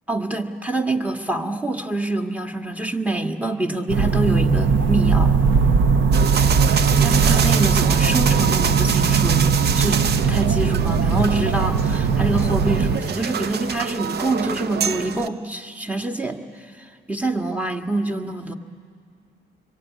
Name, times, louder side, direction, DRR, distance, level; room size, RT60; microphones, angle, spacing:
voice 1, 0.1-5.3 7.0-16.4 16.8-18.5, right 2 dB, 5° right, 4 dB, 1.7 m, -26 dB
sound 1, 3.9-13.0, right 5 dB, 75° right, 1.2 m, -19 dB
sound 2, 6.1-15.3, right 7 dB, 55° right, 0.8 m, -26 dB
25.5 x 22.5 x 9.4 m, 2.1 s
cardioid pair, 90°, 20 cm